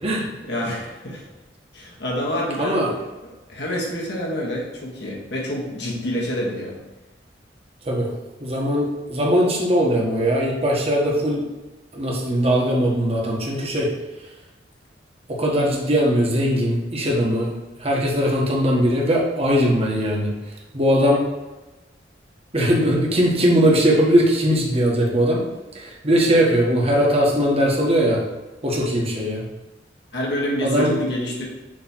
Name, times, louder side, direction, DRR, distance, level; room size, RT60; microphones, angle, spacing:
voice 1, 0.4-1.2 1.7-2.8 3.5-6.8 30.1-31.5, equal, 65° left, -3 dB, 1.8 m, -27 dB
voice 2, 2.6-2.9 7.8-8.1 8.4-11.4 11.9-13.9 15.3-17.5 17.8-20.3 20.7-21.2 22.5-25.4 25.7-28.2 28.6-29.4 30.6-31.0, equal, 35° right, -2 dB, 1.4 m, -20 dB
6.5 x 3.3 x 6.0 m, 1.1 s
head